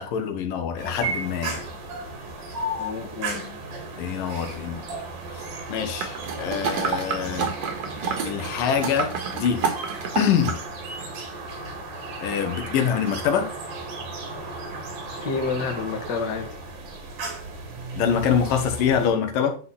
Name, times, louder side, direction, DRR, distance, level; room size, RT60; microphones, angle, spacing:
voice 1, 0.0-1.7 4.0-4.8 5.3-7.5 8.2-9.6 10.2-10.6 12.2-13.5 17.9-19.6, left 7 dB, 85° left, 5 dB, 2.9 m, -25 dB
sound 1, 0.8-19.1, right 2 dB, 70° right, 3.7 m, -35 dB
voice 2, 2.8-3.6 15.2-16.5, left 4 dB, 45° left, 4 dB, 1.6 m, -29 dB
sound 2, 6.0-10.6 11.0-11.1, right 6 dB, 55° right, 2.4 m, -29 dB
10.5 x 4.0 x 5.5 m, 0.42 s
omnidirectional pair, 3.8 m